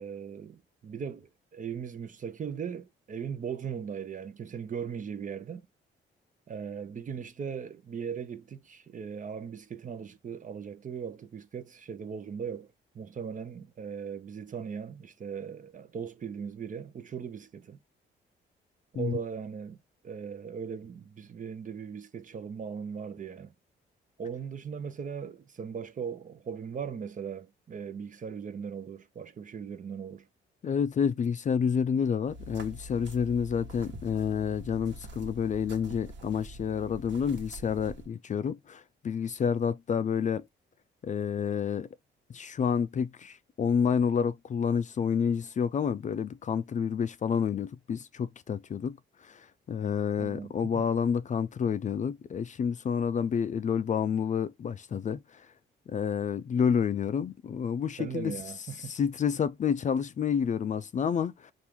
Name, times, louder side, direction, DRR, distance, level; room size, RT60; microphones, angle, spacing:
voice 1, 0.0-5.6 6.5-12.7 12.9-17.8 18.9-19.8 20.0-23.5 24.2-30.3 50.2-50.8 58.0-58.9, right 7 dB, 40° right, 0.7 m, -38 dB
voice 2, 30.6-40.4 41.0-41.9 42.3-49.0 49.2-55.4 55.9-58.3 58.8-61.5, left 7 dB, 40° left, 0.4 m, -29 dB
sound 1, 32.2-38.1, right 1 dB, 65° right, 1.3 m, -45 dB
4.4 x 2.6 x 3.5 m
cardioid pair, 90°, 20 cm